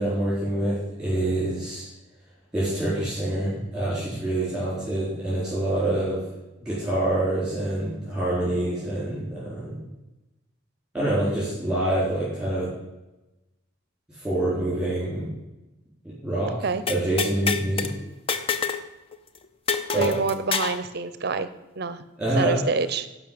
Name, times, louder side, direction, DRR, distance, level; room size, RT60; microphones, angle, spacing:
voice 1, 0.0-1.9 2.5-6.2 6.6-9.8 10.9-12.7 14.1-15.3 16.2-16.5 16.9-17.9 19.9-20.1 22.2-22.6, right 1 dB, 5° right, -8 dB, 4.2 m, -26 dB
sound 1, 16.9-17.9 18.3-18.9 19.1-19.2 19.7-20.8, left 5 dB, 30° left, 0.7 m, -27 dB
voice 2, 20.0-21.5 21.8-22.0 22.4-23.1, right 4 dB, 50° right, 13 dB, 0.6 m, -27 dB
11.5 x 5.6 x 8.5 m, 1.0 s
head